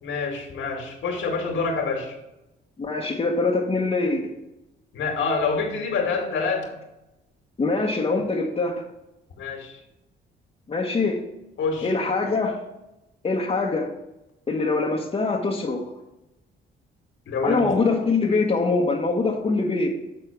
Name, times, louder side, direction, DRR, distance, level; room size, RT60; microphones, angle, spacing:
voice 1, 0.0-2.2 4.9-6.7 9.4-9.8 11.6-11.9 17.3-17.7, left 4 dB, 70° left, 2 dB, 1.9 m, -26 dB
voice 2, 2.8-4.3 7.6-8.9 10.7-11.2 11.8-12.6 13.2-13.9 14.5-15.9 17.4-19.9, left 3 dB, 30° left, -3 dB, 1.2 m, -23 dB
7.8 x 4.3 x 5.8 m, 0.95 s
cardioid pair, 90°, 20 cm